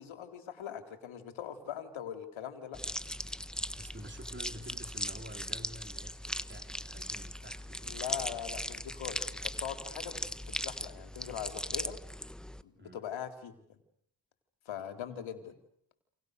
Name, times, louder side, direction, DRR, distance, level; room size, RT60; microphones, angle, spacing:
voice 1, 0.0-2.8 6.9-7.0 7.9-10.2 10.5-12.0 12.6-13.8 14.7-15.6, left 9 dB, 85° left, 7 dB, 4.1 m, -41 dB
sound 1, 2.7-12.6, equal, ahead, 1.4 m, -39 dB
voice 2, 3.8-8.0 12.7-13.0 15.1-15.2, right 1 dB, 25° right, 5 dB, 4.3 m, -49 dB
29.5 x 28.5 x 6.9 m, 0.70 s
cardioid pair, 70°, 46 cm